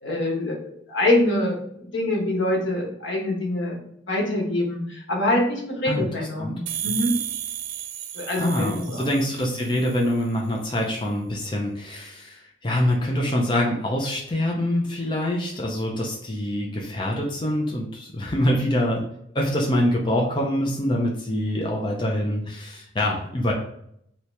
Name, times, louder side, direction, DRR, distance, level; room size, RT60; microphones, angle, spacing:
voice 1, 0.0-3.8 4.1-7.1 8.1-9.1, left 1 dB, 85° left, -2 dB, 1.1 m, -25 dB
sound 1, 6.7-10.2, right 10 dB, 80° right, 0.4 m, -33 dB
voice 2, 8.4-19.0 19.3-23.5, left 1 dB, 25° left, -1 dB, 0.5 m, -25 dB
2.8 x 2.8 x 3.2 m, 0.71 s
head